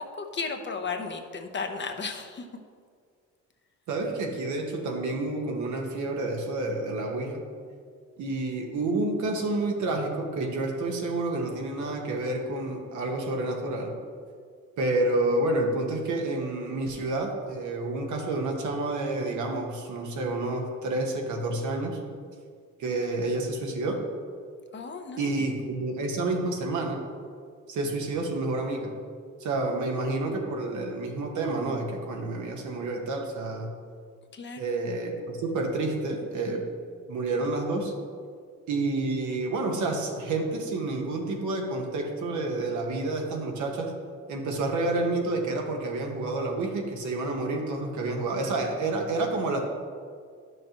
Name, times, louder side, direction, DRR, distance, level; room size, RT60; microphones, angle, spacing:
voice 1, 0.2-2.4 24.7-25.4 34.3-34.6, left 4 dB, 40° left, 5 dB, 0.8 m, -34 dB
voice 2, 3.9-7.4 8.2-13.9 14.8-22.0 22.8-24.0 25.2-27.0 27.7-28.9 29.4-33.7 34.6-36.7 37.1-37.9 38.7-43.9 44.3-49.6, right 2 dB, 75° right, 2 dB, 1.3 m, -29 dB
10.5 x 6.3 x 3.0 m, 2.1 s
cardioid pair, 90°, 30 cm